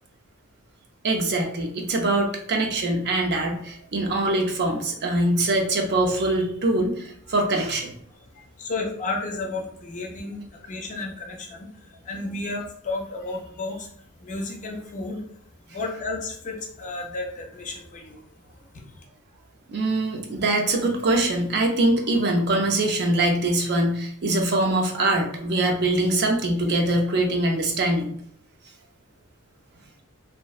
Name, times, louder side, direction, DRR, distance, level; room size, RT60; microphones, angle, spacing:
voice 1, 1.0-7.9 19.7-28.1, right 2 dB, 50° right, 1 dB, 0.4 m, -23 dB
voice 2, 8.3-13.9 14.2-15.2 15.7-18.2 18.7-19.0, left 3 dB, 35° left, 0 dB, 0.5 m, -33 dB
2.5 x 2.1 x 2.3 m, 0.66 s
head